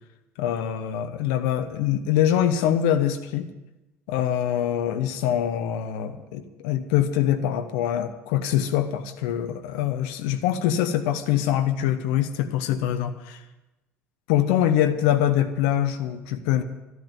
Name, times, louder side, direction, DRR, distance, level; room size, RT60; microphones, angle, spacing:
voice 1, 0.4-3.5 4.1-13.1 14.3-16.6, left 10 dB, 65° left, 8 dB, 1.0 m, -24 dB
13.0 x 12.5 x 7.7 m, 1.0 s
figure-of-eight pair, 55°, 7 cm